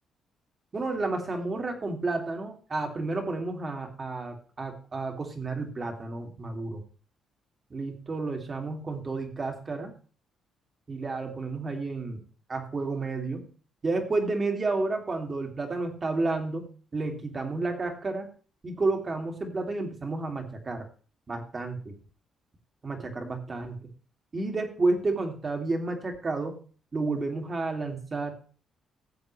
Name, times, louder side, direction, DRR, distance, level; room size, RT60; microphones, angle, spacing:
voice 1, 0.7-6.8 7.7-9.9 10.9-12.2 12.5-13.5 13.8-18.3 18.6-20.9 21.3-22.0 22.8-23.8 24.3-26.6 26.9-28.3, right 3 dB, 35° right, 4 dB, 2.4 m, -31 dB
16.5 x 7.4 x 3.2 m, 0.40 s
cardioid pair, 90°, 0 cm